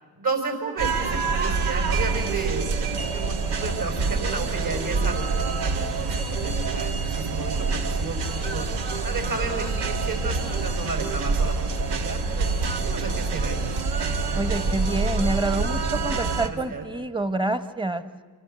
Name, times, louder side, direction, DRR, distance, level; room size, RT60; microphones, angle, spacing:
voice 1, 0.2-13.8 14.2-14.8 16.4-16.9, right 4 dB, 55° right, 5 dB, 5.9 m, -33 dB
sound 1, 0.8-16.5, right 4 dB, 75° right, 2.0 m, -26 dB
voice 2, 14.3-18.0, right 2 dB, 10° right, 11 dB, 1.4 m, -27 dB
27.5 x 26.0 x 6.9 m, 1.4 s
cardioid pair, 90°, 41 cm